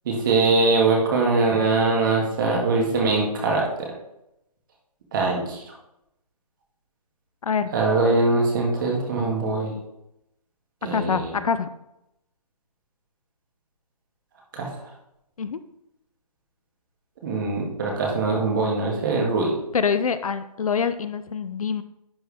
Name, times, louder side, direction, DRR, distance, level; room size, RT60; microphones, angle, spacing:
voice 1, 0.1-3.9 5.1-5.7 7.7-9.7 10.8-11.4 14.5-14.7 17.2-19.5, right 3 dB, 30° right, -1 dB, 2.1 m, -22 dB
voice 2, 10.9-11.7 15.4-15.6 19.7-21.8, left 6 dB, 60° left, 12 dB, 0.5 m, -25 dB
10.5 x 4.7 x 3.5 m, 0.85 s
hypercardioid pair, 160°, 20 cm